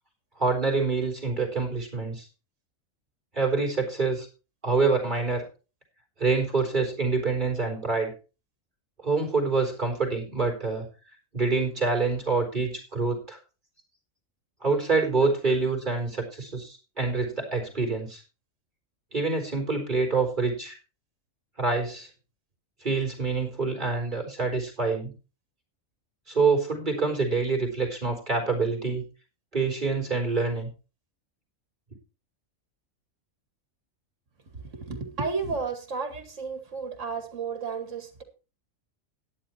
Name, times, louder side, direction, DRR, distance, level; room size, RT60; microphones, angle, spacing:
voice 1, 0.4-2.3 3.3-4.3 4.6-5.4 6.2-8.1 9.0-10.9 11.3-13.4 14.6-18.2 19.1-20.8 21.6-22.1 22.8-25.1 26.3-29.0 29.5-30.7, right 4 dB, 35° right, 2 dB, 3.9 m, -26 dB
voice 2, 34.5-38.2, right 4 dB, 65° right, 7 dB, 2.6 m, -33 dB
12.0 x 10.0 x 4.4 m, 0.33 s
omnidirectional pair, 1.4 m